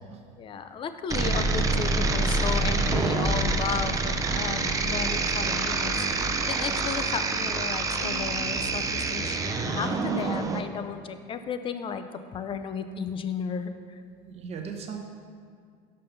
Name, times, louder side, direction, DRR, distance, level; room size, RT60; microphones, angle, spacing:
voice 1, 0.4-6.0 6.5-14.0, left 6 dB, 35° left, 9 dB, 0.4 m, -34 dB
sound 1, 1.1-10.6, right 3 dB, 20° right, 0.5 m, -26 dB
sound 2, 2.8-10.6, equal, 75° left, 0.7 m, -45 dB
voice 2, 14.3-15.0, right 5 dB, 40° right, 2 dB, 0.8 m, -38 dB
5.5 x 5.4 x 5.4 m, 2.1 s
supercardioid pair, 105°, 16 cm